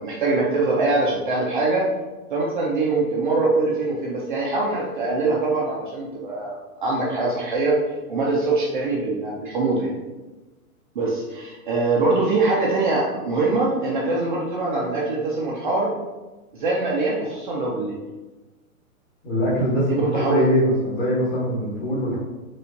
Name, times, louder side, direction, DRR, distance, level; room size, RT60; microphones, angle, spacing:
voice 1, 0.0-1.9 2.3-7.8 8.1-9.9 11.0-15.9 16.5-18.0 19.9-20.5, right 3 dB, 35° right, -4 dB, 0.4 m, -23 dB
voice 2, 19.2-22.2, equal, 25° left, -7 dB, 1.2 m, -22 dB
4.4 x 2.4 x 2.6 m, 1.2 s
hypercardioid pair, 150°, 43 cm